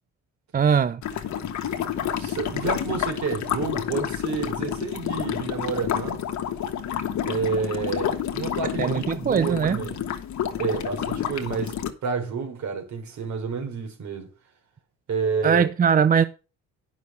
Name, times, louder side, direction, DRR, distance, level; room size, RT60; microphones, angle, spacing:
voice 1, 0.5-1.0 8.8-9.8 15.4-16.2, right 7 dB, 30° right, 0.5 m, -20 dB
sound 1, 1.0-11.9, left 9 dB, 70° left, 1.5 m, -29 dB
voice 2, 2.2-6.2 7.3-10.0 10.6-14.3 15.1-15.7, right 5 dB, 70° right, 3.5 m, -29 dB
9.6 x 6.2 x 5.4 m
cardioid pair, 90°, 30 cm